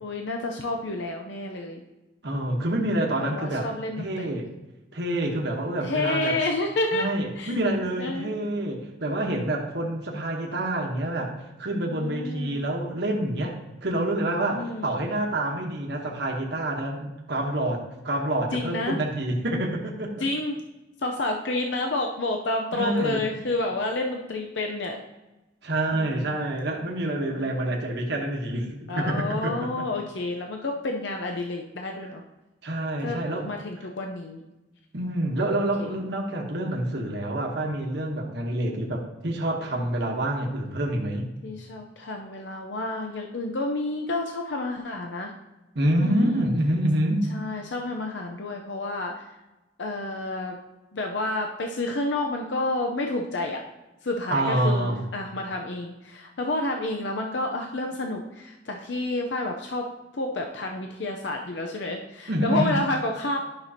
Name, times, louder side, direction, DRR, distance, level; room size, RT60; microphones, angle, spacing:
voice 1, 0.0-1.8 3.2-4.4 5.8-7.0 7.4-7.5 8.0-8.4 11.8-12.6 14.5-14.9 18.5-19.0 20.2-20.6 21.0-25.0 25.9-26.4 27.3-27.7 28.9-32.2 33.0-33.2 33.4-34.4 35.8-35.9 41.4-45.3 46.0-46.4 47.3-49.3 49.8-50.6 50.9-53.6 54.0-59.8 60.1-63.4, left 2 dB, 65° left, 2 dB, 0.7 m, -30 dB
voice 2, 2.2-3.7 4.0-4.5 4.9-6.4 6.9-11.3 11.6-13.5 13.8-20.1 22.7-23.3 25.6-29.7 32.6-33.5 34.9-41.3 45.7-47.3 54.3-55.0 62.3-62.8, right 1 dB, 60° right, 0 dB, 1.1 m, -27 dB
10.5 x 6.0 x 2.8 m, 1.0 s
head